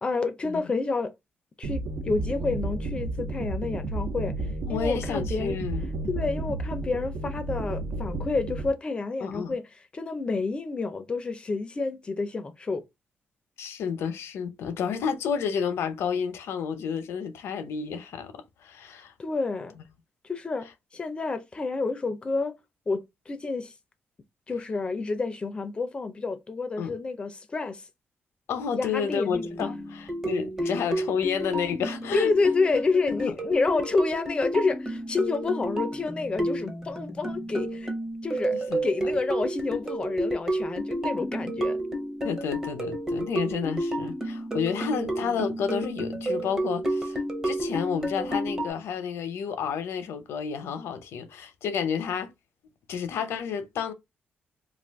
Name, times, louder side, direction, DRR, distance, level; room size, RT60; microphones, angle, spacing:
voice 1, 0.0-1.1 1.6-4.3 4.7-5.6 6.1-9.6 9.9-12.8 19.2-19.7 20.3-20.7 20.9-22.6 22.9-23.7 24.5-27.8 28.7-29.5 30.6-30.9 32.1-37.9 38.2-41.8, left 3 dB, 25° left, 0.4 m, -29 dB
sound 1, 1.6-8.7, right 2 dB, 70° right, 0.5 m, -32 dB
voice 2, 4.7-5.9 9.2-9.6 13.6-19.1 26.8-26.9 28.5-32.3 33.2-33.3 38.5-39.1 42.2-52.3 52.9-53.9, left 7 dB, 85° left, 0.6 m, -31 dB
sound 2, 29.3-48.7, right 1 dB, 15° right, 0.6 m, -31 dB
2.4 x 2.4 x 3.4 m
wide cardioid pair, 155°, 4 cm